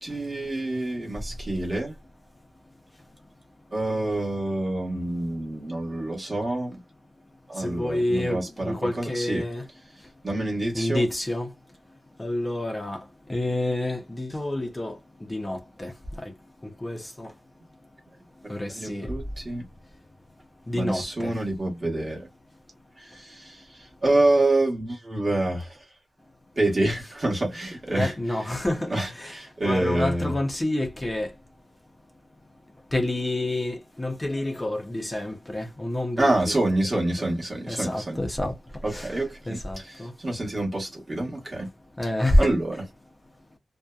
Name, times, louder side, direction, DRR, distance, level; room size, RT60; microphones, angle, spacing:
voice 1, 0.0-1.9 3.7-6.8 7.5-9.5 10.2-11.1 18.7-19.6 20.7-22.3 23.0-25.8 26.6-28.1 28.9-30.3 36.2-38.2 38.8-41.7 42.4-42.8, right 2 dB, 30° right, 0.9 m, -27 dB
voice 2, 7.6-9.6 10.7-11.5 12.2-13.0 13.3-15.0 15.3-15.9 16.8-17.3 18.5-19.1 20.7-21.3 27.9-29.4 29.6-31.3 32.9-36.6 37.2-37.3 37.7-38.5 38.9-39.1 39.5-40.1 42.0-42.5, left 1 dB, 15° left, 0.5 m, -28 dB
2.6 x 2.1 x 2.2 m
wide cardioid pair, 135°, 0 cm